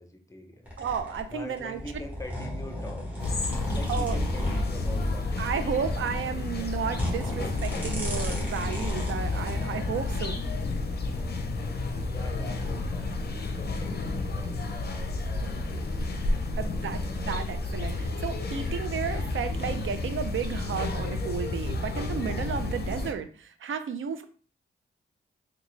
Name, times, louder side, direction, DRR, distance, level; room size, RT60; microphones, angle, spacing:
voice 1, 0.0-0.7 1.3-3.1 3.6-6.7 12.1-16.0 16.5-17.4, left 1 dB, 15° left, 4 dB, 0.7 m, -45 dB
sound 1, 0.6-10.3 10.9-11.2, left 1 dB, 10° right, 1.3 m, -33 dB
voice 2, 0.8-1.8 3.9-4.2 5.4-10.4 16.6-24.2, right 7 dB, 70° right, 10 dB, 0.4 m, -33 dB
sound 2, 3.2-23.1, left 3 dB, 50° left, 0.5 m, -31 dB
3.7 x 2.3 x 3.1 m, 0.42 s
cardioid pair, 65°, 21 cm